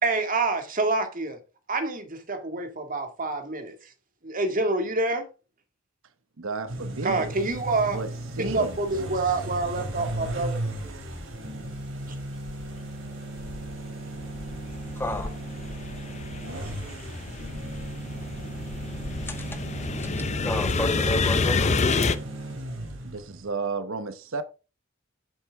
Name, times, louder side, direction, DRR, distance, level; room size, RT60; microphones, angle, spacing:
voice 1, 0.0-1.4 1.7-3.8 4.2-5.3 7.0-8.0 8.4-10.6, right 3 dB, 45° right, 2.0 m, -27 dB
voice 2, 6.4-7.3 7.9-8.1 8.4-8.8 23.0-24.4, right 4 dB, 85° right, 1.0 m, -32 dB
sound 1, 6.7-23.5, right 1 dB, 70° right, 3.1 m, -36 dB
sound 2, 8.9-9.0 9.6-11.3 11.6-12.9 13.3-22.2, left 4 dB, 35° left, 0.7 m, -29 dB
voice 3, 14.2-21.7, left 2 dB, 10° left, 1.7 m, -37 dB
9.9 x 7.8 x 3.5 m
head